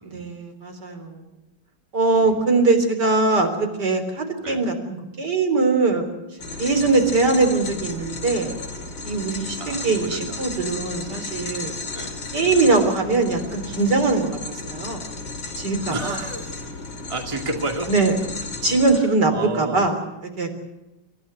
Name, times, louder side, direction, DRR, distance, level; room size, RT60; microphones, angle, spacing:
voice 1, 0.1-1.2 1.9-6.1 6.6-8.6 9.0-11.7 12.3-15.0 15.6-16.2 17.9-18.2 18.6-20.5, right 3 dB, 65° right, 6 dB, 4.3 m, -21 dB
voice 2, 2.1-2.5 4.4-4.6 6.7-7.1 9.6-10.8 11.1-11.3 11.9-12.1 12.5-12.7 15.9-16.6 17.1-17.9 19.0-19.9, right 2 dB, 15° right, 3 dB, 2.3 m, -32 dB
sound 1, 6.4-19.0, left 3 dB, 90° left, 3.8 m, -34 dB
28.5 x 16.0 x 8.1 m, 1.0 s
omnidirectional pair, 1.9 m